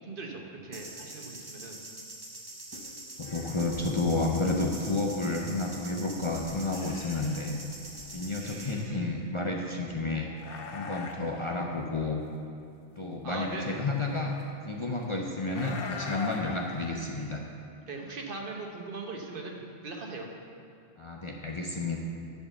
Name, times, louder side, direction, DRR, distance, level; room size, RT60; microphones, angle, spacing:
voice 1, 0.1-1.8 8.4-9.1 13.2-13.8 17.9-20.3, right 3 dB, 55° right, 1 dB, 1.2 m, -40 dB
sound 1, 0.7-8.9, right 2 dB, 25° right, 0.9 m, -44 dB
sound 2, 3.2-9.0 10.1-11.7 13.4-14.4 15.4-16.9, left 4 dB, 60° left, 0.9 m, -43 dB
voice 2, 3.2-7.6 8.1-10.3 10.7-12.2 13.0-14.3 14.6-17.4 21.0-22.0, left 2 dB, 35° left, 0 dB, 0.6 m, -31 dB
10.5 x 4.5 x 6.9 m, 2.4 s
omnidirectional pair, 1.1 m